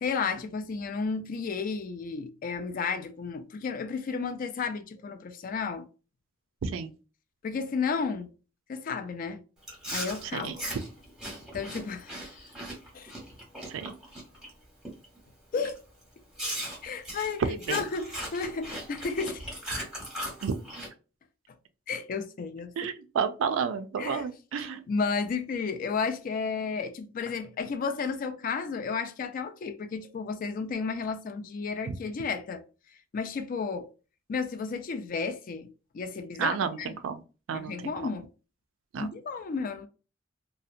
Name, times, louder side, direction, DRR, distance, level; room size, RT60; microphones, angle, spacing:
voice 1, 0.0-5.9 7.4-8.3 8.7-9.4 9.9-10.5 11.5-12.3 12.9-13.1 15.5-15.8 16.8-17.4 17.7-19.4 21.9-22.9 24.0-24.2 24.6-32.6 33.1-33.9 34.3-35.7 35.9-37.0 37.5-38.3 39.0-39.9, left 5 dB, 45° left, 0.3 m, -32 dB
Chewing mastication, 9.6-14.5 14.8-15.2 15.6-15.8 16.4-20.9, right 1 dB, 5° right, 0.8 m, -38 dB
voice 2, 17.4-17.8 20.4-20.6 22.8-24.8 31.9-32.0 36.4-37.2 37.5-37.9 38.9-39.1, right 6 dB, 90° right, 0.4 m, -31 dB
2.7 x 2.0 x 2.4 m
head